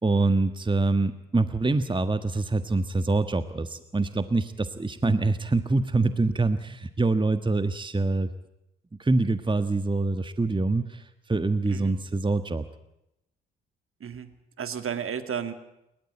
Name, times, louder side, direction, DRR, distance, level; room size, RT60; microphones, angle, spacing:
voice 1, 0.0-8.3 9.0-12.6, right 3 dB, 15° right, 11 dB, 1.5 m, -25 dB
voice 2, 11.6-12.0 14.0-15.5, right 7 dB, 45° right, 10 dB, 2.6 m, -33 dB
29.0 x 14.0 x 8.9 m, 0.84 s
hypercardioid pair, 45°, 30 cm